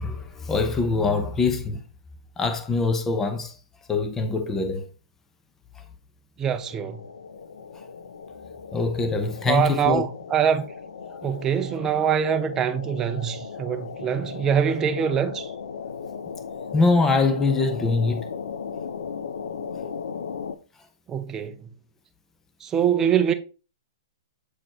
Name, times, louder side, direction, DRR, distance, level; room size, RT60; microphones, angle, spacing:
voice 1, 0.0-1.8 2.4-3.5 3.9-4.8 8.7-10.0 11.0-11.2 16.7-18.2, left 3 dB, 15° left, 0.9 m, -23 dB
voice 2, 6.4-7.0 9.4-10.6 11.2-15.5 21.1-21.6 22.6-23.3, right 8 dB, 20° right, 0.6 m, -24 dB
sound 1, 6.6-20.5, left 6 dB, 85° left, 0.6 m, -37 dB
7.8 x 4.1 x 3.0 m
hypercardioid pair, 140°, 3 cm